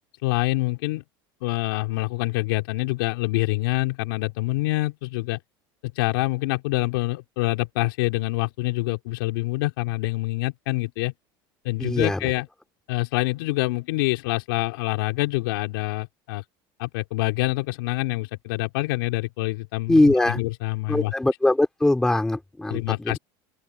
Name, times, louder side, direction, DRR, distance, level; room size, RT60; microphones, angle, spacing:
voice 1, 0.2-1.0 1.4-5.4 5.8-11.1 11.6-12.5 12.9-16.4 16.8-21.1 22.7-23.2, left 21 dB, 85° left, 4.4 m, -26 dB
voice 2, 11.8-12.3 19.9-20.4 20.9-23.2, left 2 dB, 5° left, 3.9 m, -21 dB
open air
cardioid pair, 160°, 11 cm